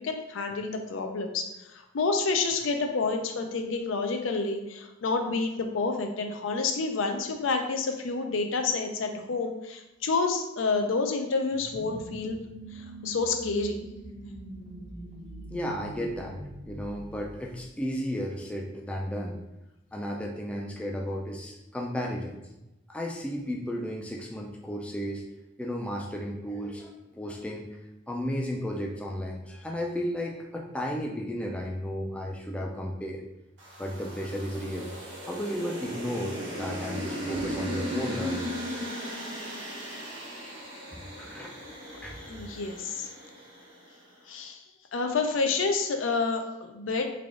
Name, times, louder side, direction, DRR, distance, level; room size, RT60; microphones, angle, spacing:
voice 1, 0.0-12.4 12.7-13.8 42.1-43.1 44.3-44.6 44.9-47.1, left 4 dB, 85° left, 5 dB, 0.5 m, -29 dB
sound 1, 11.5-18.0, right 2 dB, 35° right, 0.6 m, -43 dB
voice 2, 15.5-16.4 16.7-19.4 19.9-22.3 22.9-25.2 25.6-27.7 28.1-33.2 33.8-34.9 35.2-38.5 40.9-41.6 42.0-42.2, equal, 5° left, 0 dB, 0.3 m, -34 dB
sound 2, 33.6-43.9, equal, 70° right, 1.2 m, -37 dB
3.3 x 2.4 x 3.7 m, 0.94 s
head